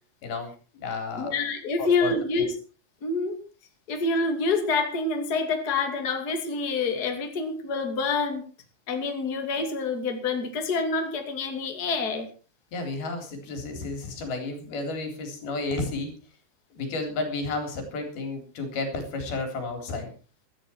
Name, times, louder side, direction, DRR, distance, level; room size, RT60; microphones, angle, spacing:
voice 1, 0.2-1.4 1.8-2.5 12.7-16.1 16.7-20.1, left 3 dB, 80° left, 6 dB, 5.5 m, -32 dB
voice 2, 1.2-2.5 3.0-3.4 3.9-8.4 8.9-12.3, left 4 dB, 30° left, 5 dB, 2.5 m, -27 dB
17.0 x 13.5 x 4.5 m, 0.35 s
omnidirectional pair, 4.3 m